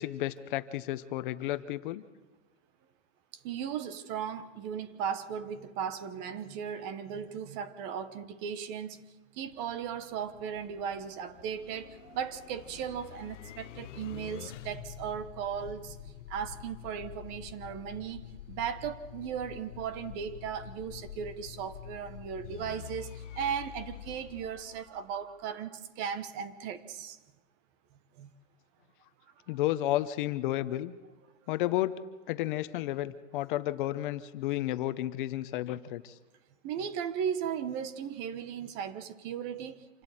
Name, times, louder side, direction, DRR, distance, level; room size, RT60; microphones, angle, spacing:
voice 1, 0.0-2.0 29.5-30.9 31.5-32.0 32.3-36.1, left 14 dB, 45° left, 12 dB, 0.9 m, -32 dB
voice 2, 3.4-9.0 9.3-27.2 28.2-28.3 29.5-29.6 36.6-40.0, right 8 dB, 30° right, 12 dB, 1.1 m, -37 dB
sound 1, 9.5-25.4, left 12 dB, 85° left, 0.9 m, -47 dB
27.0 x 12.5 x 8.9 m, 1.2 s
supercardioid pair, 155°, 36 cm